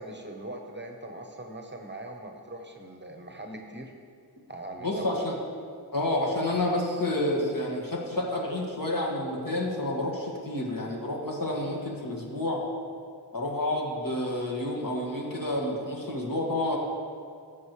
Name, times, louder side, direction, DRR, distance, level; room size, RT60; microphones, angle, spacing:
voice 1, 0.0-3.9 4.5-5.1, right 1 dB, 25° right, 3 dB, 0.9 m, -41 dB
voice 2, 4.8-5.3 5.9-12.6 13.3-16.8, left 1 dB, 55° left, -3 dB, 1.9 m, -29 dB
15.5 x 6.2 x 3.2 m, 2.2 s
wide cardioid pair, 55°, 40 cm